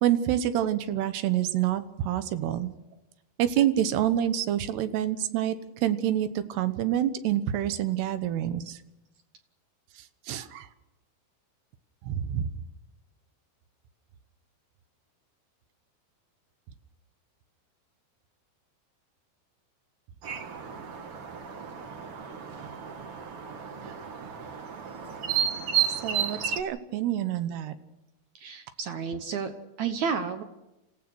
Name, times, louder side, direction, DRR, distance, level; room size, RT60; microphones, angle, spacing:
voice 1, 0.0-2.7 3.4-5.6 5.8-8.8 10.3-10.7 12.0-12.5 23.8-23.9 26.0-27.7, right 11 dB, 90° right, 11 dB, 3.2 m, -27 dB
sound 1, 20.2-26.6, right 8 dB, 55° right, 1.7 m, -32 dB
voice 2, 28.4-30.4, right 6 dB, 70° right, 8 dB, 1.8 m, -31 dB
27.5 x 16.0 x 6.3 m, 0.97 s
omnidirectional pair, 4.6 m